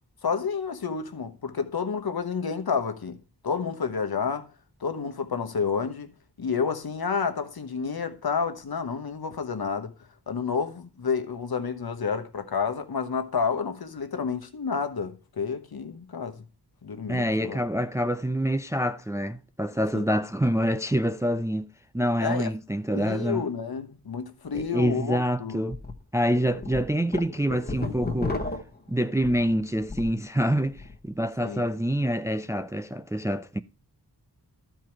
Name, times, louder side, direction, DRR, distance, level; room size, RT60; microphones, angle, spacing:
voice 1, 0.2-3.2 3.4-4.5 4.8-6.1 6.4-9.9 10.3-16.4 16.8-17.6 19.9-20.0 22.2-22.5 22.9-25.6 31.4-31.6, left 5 dB, 65° left, 1.1 m, -30 dB
voice 2, 17.1-21.7 21.9-23.4 24.5-25.8 26.1-28.4 28.9-33.6, equal, 10° right, 0.4 m, -26 dB
sound 1, 24.6-24.7 25.0-25.1 25.7-25.9 26.4-30.2 30.5-31.0, left 3 dB, 25° left, 1.2 m, -33 dB
12.5 x 4.6 x 4.5 m
wide cardioid pair, 70°, 39 cm